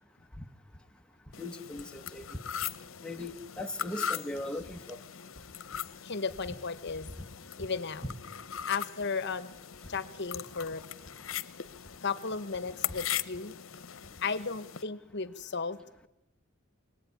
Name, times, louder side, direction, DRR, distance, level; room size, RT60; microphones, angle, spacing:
sound 1, 1.3-14.8, left 9 dB, 80° left, 0.9 m, -40 dB
voice 1, 1.4-2.3 3.0-5.0, left 2 dB, 5° left, 1.1 m, -39 dB
voice 2, 6.0-7.1 7.6-8.0 8.7-9.5 9.9-10.8 12.0-13.6 14.2-16.1, left 5 dB, 60° left, 1.1 m, -35 dB
24.0 x 19.0 x 9.5 m
head